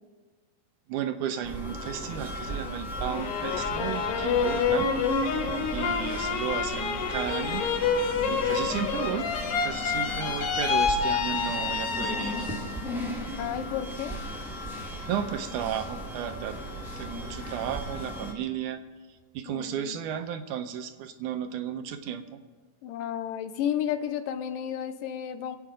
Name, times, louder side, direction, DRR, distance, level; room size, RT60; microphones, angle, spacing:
voice 1, 0.9-4.9 5.7-7.7 8.3-9.3 9.6-12.5 15.1-16.6 17.0-18.8 19.3-22.4, right 9 dB, 80° right, 8 dB, 2.2 m, -33 dB
Air Conditioner Rijksmuseum Amsterdam NL, 1.4-18.3, equal, ahead, 1.1 m, -37 dB
sound 1, 3.0-12.8 13.2-13.9, left 5 dB, 65° left, 1.6 m, -28 dB
voice 2, 13.3-14.2 19.5-20.0 22.8-25.6, left 9 dB, 90° left, 10 dB, 2.4 m, -32 dB
22.0 x 8.5 x 5.1 m, 1.3 s
omnidirectional pair, 3.8 m